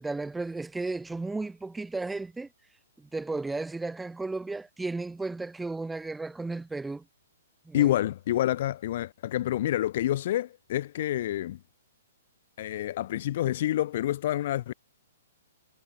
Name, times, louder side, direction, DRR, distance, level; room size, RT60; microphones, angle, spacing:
voice 1, 0.0-2.5 3.0-7.0 7.7-7.9, right 3 dB, 5° right, 1.8 m, -34 dB
voice 2, 7.7-11.6 12.6-14.7, left 13 dB, 40° left, 1.8 m, -28 dB
hypercardioid pair, 170°, 0 cm